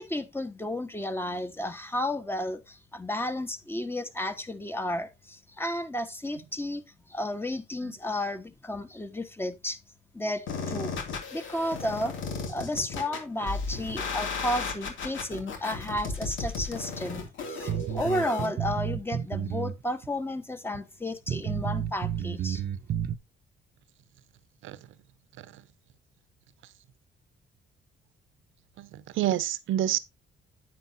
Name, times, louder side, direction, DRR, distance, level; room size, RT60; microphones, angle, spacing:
voice 1, 0.0-6.8 7.1-9.8 10.1-10.9 11.3-12.1 12.5-22.6, left 1 dB, 10° left, 1.4 m, -32 dB
sound 1, 10.5-18.5, left 4 dB, 80° left, 2.6 m, -35 dB
sound 2, 17.7-19.8 20.0-20.1 20.7-20.8 21.3-23.2, right 9 dB, 55° right, 0.8 m, -31 dB
voice 2, 28.8-30.0, right 12 dB, 80° right, 0.9 m, -28 dB
9.8 x 8.3 x 2.7 m
cardioid pair, 90°, 20 cm